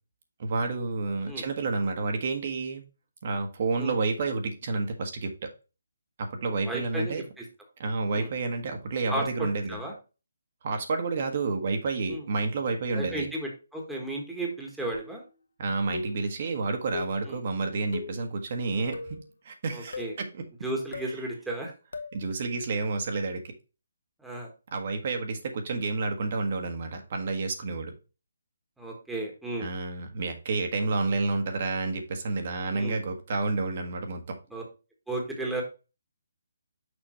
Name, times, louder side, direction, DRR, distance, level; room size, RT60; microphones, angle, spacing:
voice 1, 0.4-2.8 3.2-5.5 6.2-7.2 7.8-9.8 10.6-13.3 15.6-19.2 19.4-20.3 22.1-23.4 24.7-27.9 29.6-34.4, right 3 dB, 45° right, 1.3 m, -30 dB
voice 2, 6.6-7.4 8.1-8.3 9.1-9.9 12.1-12.2 12.9-15.2 17.3-17.4 19.7-20.1 20.6-21.7 24.2-24.5 28.8-29.7 32.7-33.0 34.5-34.6 35.1-35.6, right 1 dB, ahead, 1.4 m, -34 dB
sound 1, 14.9-15.3 15.9-16.3 16.9-17.2 17.9-18.2 18.9-19.3 19.9-20.2 20.9-21.2 21.9-22.2, left 3 dB, 75° left, 1.4 m, -38 dB
6.3 x 5.0 x 3.1 m
hypercardioid pair, 160°, 0 cm